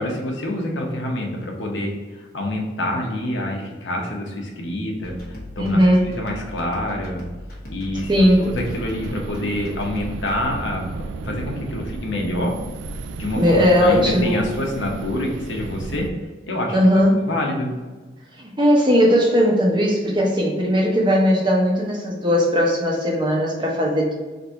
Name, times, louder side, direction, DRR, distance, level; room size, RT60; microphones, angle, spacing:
voice 1, 0.0-5.1 5.6-5.8 6.0-7.2 7.7-12.6 13.2-16.1 16.5-16.8 17.2-17.7, left 1 dB, 85° left, 0 dB, 0.9 m, -26 dB
sound 1, 5.0-10.3, left 1 dB, 50° left, 1.2 m, -38 dB
voice 2, 5.6-6.1 8.1-8.4 13.4-14.4 16.7-17.2 18.4-24.1, equal, 25° right, -2 dB, 0.8 m, -18 dB
sound 2, 8.0-16.1, right 3 dB, 85° right, 0.3 m, -33 dB
4.0 x 2.7 x 4.5 m, 1.3 s
head